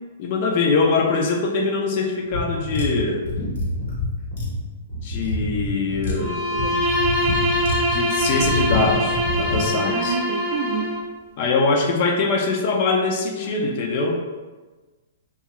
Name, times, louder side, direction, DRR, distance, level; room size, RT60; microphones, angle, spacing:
voice 1, 0.0-3.2 5.0-6.4 7.9-10.2 11.4-14.2, left 3 dB, 45° left, 2 dB, 0.4 m, -23 dB
sound 1, 2.3-9.7, left 2 dB, 75° left, 1.1 m, -27 dB
Bowed string instrument, 6.2-11.1, equal, 10° right, 0.7 m, -23 dB
voice 2, 6.5-6.9 9.7-10.9, right 6 dB, 45° right, 2 dB, 0.4 m, -29 dB
2.8 x 2.3 x 3.0 m, 1.3 s
hypercardioid pair, 145°, 0 cm